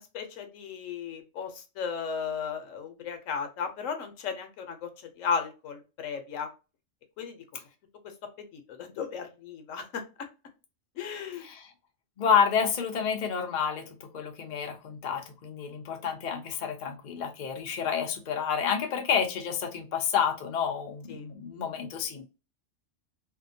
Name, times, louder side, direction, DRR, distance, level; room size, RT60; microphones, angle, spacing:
voice 1, 0.0-4.9 5.2-6.5 7.2-7.4 8.5-10.0 11.0-11.5 21.1-21.3, left 6 dB, 70° left, 7 dB, 1.0 m, -35 dB
voice 2, 11.4-11.7 12.2-22.2, left 7 dB, 55° left, 3 dB, 0.5 m, -29 dB
2.7 x 2.2 x 2.5 m, 0.30 s
omnidirectional pair, 1.4 m